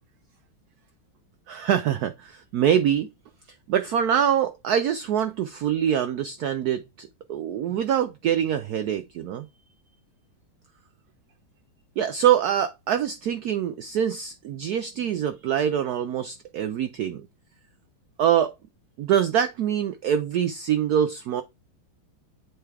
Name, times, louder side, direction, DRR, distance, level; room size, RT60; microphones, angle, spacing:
voice 1, 1.5-3.1 3.7-9.5 12.0-17.2 18.2-18.5 19.0-21.4, right 9 dB, 85° right, 0.8 m, -24 dB
7.9 x 3.5 x 4.7 m
omnidirectional pair, 2.2 m